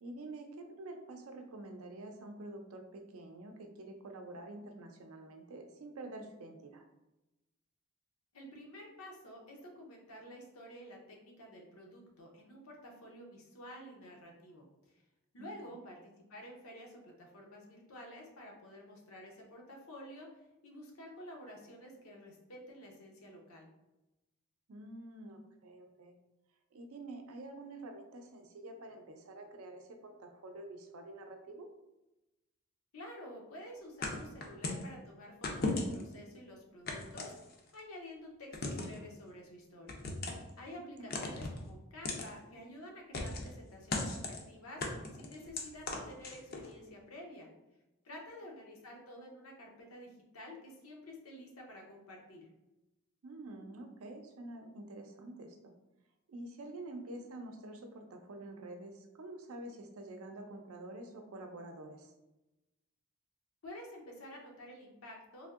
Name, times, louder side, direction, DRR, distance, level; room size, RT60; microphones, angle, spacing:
voice 1, 0.0-6.8 15.4-15.5 15.7-15.8 24.7-26.2 26.7-31.7 40.8-41.1 48.1-48.2 53.2-55.7 56.3-62.1, right 2 dB, 80° right, 4 dB, 0.5 m, -48 dB
voice 2, 8.3-15.0 15.3-23.7 32.9-37.3 37.7-40.0 40.6-44.9 45.1-47.5 48.0-52.5 63.6-65.5, left 1 dB, 80° left, 0 dB, 0.7 m, -50 dB
sound 1, 34.0-34.9 35.4-36.1 36.9-37.8 38.5-39.0 39.9-40.5 41.1-41.6 42.0-42.3 43.1-43.5 43.9-44.4 44.8-46.7, left 2 dB, 45° left, 0.4 m, -37 dB
3.4 x 2.6 x 2.4 m, 0.97 s
head